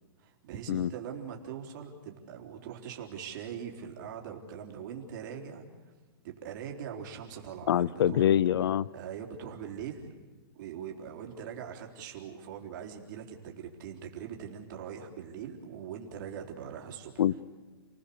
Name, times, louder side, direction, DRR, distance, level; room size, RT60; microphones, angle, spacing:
voice 1, 0.2-5.6 6.2-8.3 8.9-10.1 10.5-17.2, right 8 dB, 50° right, 1 dB, 3.8 m, -42 dB
voice 2, 7.7-8.9 17.2-17.4, left 10 dB, 70° left, 22 dB, 0.7 m, -25 dB
30.0 x 19.0 x 6.9 m, 1.3 s
hypercardioid pair, 155°, 13 cm